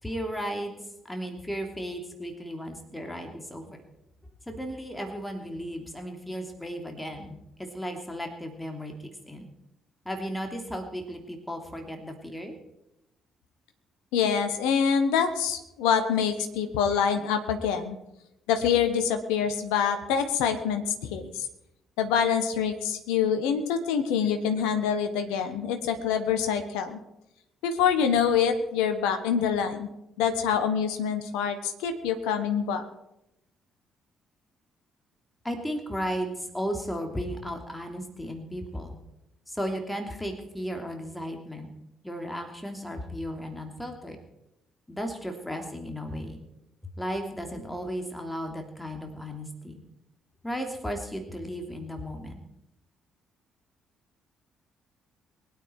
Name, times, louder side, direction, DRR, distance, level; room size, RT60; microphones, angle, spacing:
voice 1, 0.0-0.8 1.0-3.8 4.5-7.4 7.7-8.9 9.2-9.5 10.0-12.6 35.4-39.0 39.5-41.7 42.0-44.2 44.9-46.4 47.0-49.8 50.4-52.4, equal, 10° left, 4 dB, 3.0 m, -35 dB
voice 2, 14.1-18.0 18.5-21.5 22.0-27.0 27.6-29.9 30.2-32.8, left 7 dB, 70° left, 7 dB, 1.3 m, -26 dB
22.5 x 9.7 x 4.7 m, 0.86 s
figure-of-eight pair, 45°, 0 cm